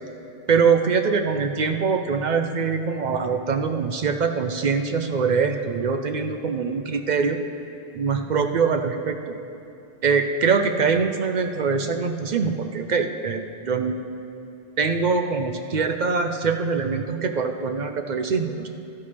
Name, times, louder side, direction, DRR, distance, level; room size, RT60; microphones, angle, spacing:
voice 1, 0.5-7.4 7.9-9.2 10.0-14.0 14.8-18.7, right 5 dB, 55° right, 6 dB, 0.6 m, -23 dB
13.0 x 11.0 x 3.4 m, 2.7 s
omnidirectional pair, 1.1 m